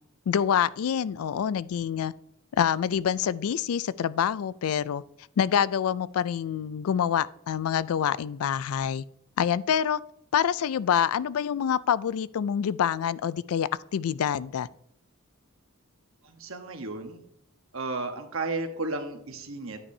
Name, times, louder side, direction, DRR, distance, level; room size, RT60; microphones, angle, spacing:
voice 1, 0.3-2.1 2.6-5.0 5.4-9.0 9.4-10.0 10.3-14.7, left 8 dB, 85° left, 19 dB, 0.3 m, -26 dB
voice 2, 16.2-17.2 17.7-19.8, right 2 dB, 70° right, 6 dB, 1.1 m, -33 dB
9.9 x 8.4 x 2.7 m, 0.74 s
head